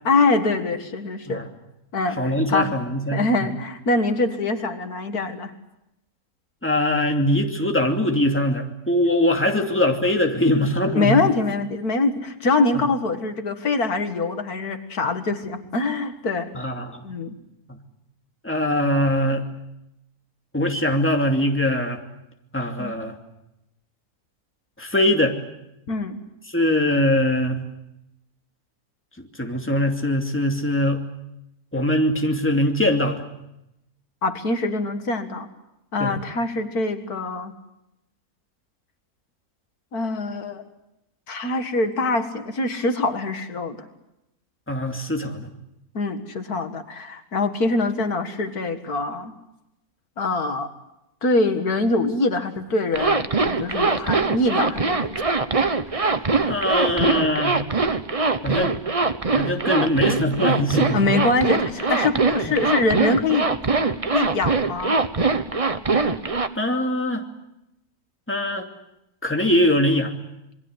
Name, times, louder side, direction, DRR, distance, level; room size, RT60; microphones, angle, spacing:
voice 1, 0.0-1.4 1.9-2.7 3.1-5.5 9.6-9.7 10.9-16.5 17.0-17.4 22.8-22.9 25.9-26.2 34.2-35.5 35.9-37.5 39.9-40.7 41.3-43.9 45.9-49.3 50.2-50.7 51.2-55.2 60.9-63.5 64.1-65.0, left 3 dB, 75° left, 7 dB, 2.3 m, -24 dB
voice 2, 2.2-3.5 6.6-11.2 16.5-17.0 18.4-19.5 20.5-22.0 22.5-23.2 24.8-25.4 26.5-27.6 29.4-31.0 31.7-33.2 36.0-36.2 44.7-45.5 56.5-57.6 58.4-58.7 59.3-61.2 66.6-67.2 68.3-68.7 69.2-70.1, left 1 dB, 10° left, 2 dB, 2.6 m, -22 dB
Zipper (clothing), 52.9-66.5, right 4 dB, 25° right, 1.0 m, -22 dB
27.5 x 22.5 x 8.0 m, 0.87 s
omnidirectional pair, 1.6 m